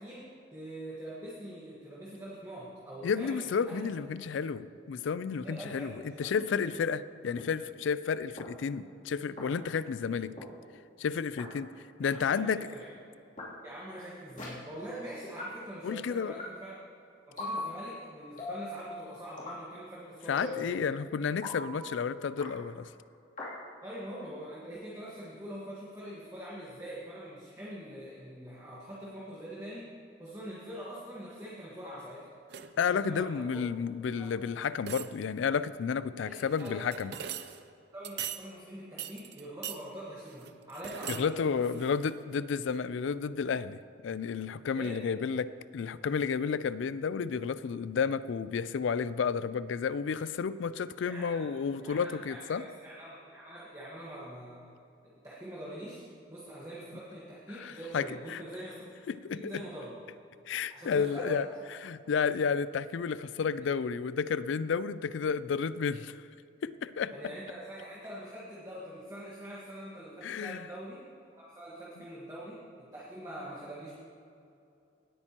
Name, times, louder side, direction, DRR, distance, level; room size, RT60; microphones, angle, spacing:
voice 1, 0.0-3.8 5.4-6.3 12.0-12.9 13.6-16.8 17.3-20.8 23.8-29.9 30.2-32.3 32.9-33.6 34.2-34.3 36.2-36.9 37.9-41.8 44.7-45.0 51.1-51.5 51.8-54.7 55.2-58.8 59.3-59.9 60.7-61.6 63.6-63.7 67.1-71.0 71.4-73.9, right 1 dB, 15° right, -7 dB, 1.4 m, -44 dB
voice 2, 3.0-10.3 11.0-11.7 12.0-12.7 15.8-16.4 20.3-22.9 32.8-37.1 41.1-52.6 57.6-58.4 59.1-59.6 60.5-61.5 61.8-66.2 66.6-67.1 70.2-70.7, left 6 dB, 75° left, 16 dB, 0.4 m, -31 dB
sound 1, 6.4-6.5 7.4-7.5 8.4-8.5 9.4-9.5 10.4-10.5 11.4-11.5 12.4-12.5 13.4-13.5 14.4-14.5 15.4-15.5 16.4-16.5 17.4-17.6 18.4-18.6 19.4-19.6 20.4-20.6 21.4-21.6 22.4-22.5 23.4-23.5, left 2 dB, 40° left, 2.9 m, -38 dB
sound 2, 32.5-32.9 34.3-34.4 34.8-35.4 36.4-37.6 38.0-38.5 39.0-39.8 40.3-41.3 41.6-42.3 42.7-42.8, right 9 dB, 55° right, 0.5 m, -41 dB
18.0 x 8.8 x 2.9 m, 2.6 s
head